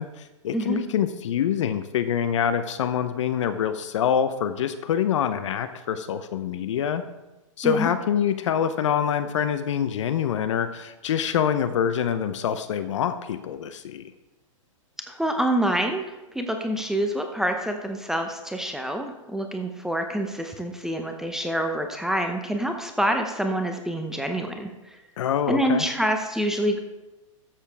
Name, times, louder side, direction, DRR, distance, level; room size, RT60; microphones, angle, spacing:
voice 1, 0.0-7.0 7.6-14.1 25.2-25.9, left 8 dB, 65° left, 10 dB, 0.8 m, -25 dB
voice 2, 15.1-25.0 25.5-26.8, right 1 dB, 5° right, 4 dB, 0.7 m, -27 dB
13.0 x 7.2 x 3.5 m, 1.0 s
hypercardioid pair, 120°, 17 cm